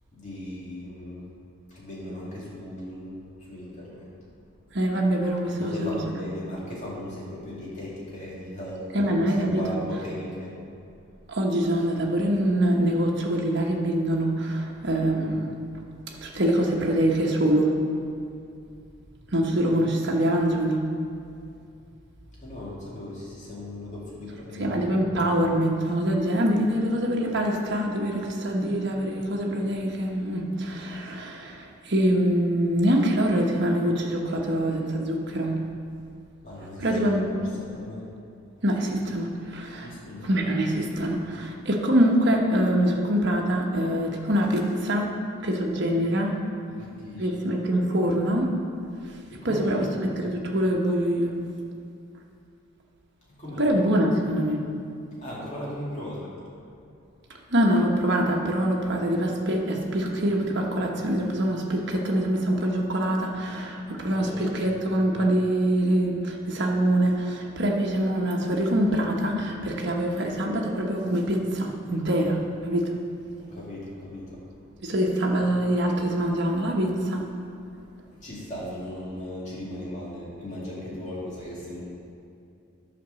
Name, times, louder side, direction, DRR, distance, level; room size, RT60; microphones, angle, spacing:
voice 1, 0.1-1.2 1.7-4.2 5.5-10.5 22.4-24.8 28.5-28.9 36.4-38.1 39.8-40.3 46.7-47.5 49.3-49.9 53.3-53.8 55.2-56.3 64.1-64.6 73.4-74.4 78.2-81.8, left 1 dB, 35° left, -7 dB, 2.7 m, -38 dB
voice 2, 4.7-6.0 8.9-9.8 11.3-15.5 16.1-17.8 19.3-20.8 24.6-35.6 36.8-37.2 38.6-39.9 40.2-45.1 45.4-46.4 47.2-48.5 49.0-49.2 49.4-51.4 53.6-54.6 57.5-72.9 74.8-77.2, right 1 dB, 55° right, 0 dB, 1.2 m, -24 dB
10.0 x 5.3 x 6.9 m, 2.5 s
head